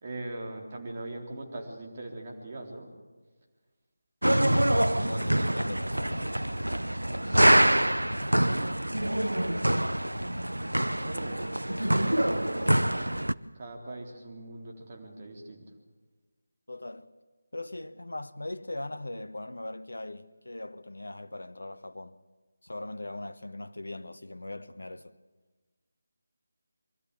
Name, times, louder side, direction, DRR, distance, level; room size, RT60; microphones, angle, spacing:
voice 1, 0.0-2.9 4.7-5.3 7.2-7.6 11.1-11.5 11.9-12.7 13.5-15.6, right 2 dB, 35° right, 3.8 m, -41 dB
sound 1, 4.2-13.3, right 1 dB, 85° right, 0.7 m, -25 dB
voice 2, 4.3-4.7 5.0-6.3 16.7-17.2 17.5-22.2 22.6-25.1, left 2 dB, 70° left, 1.0 m, -40 dB
24.0 x 13.5 x 8.5 m
figure-of-eight pair, 160°, 0 cm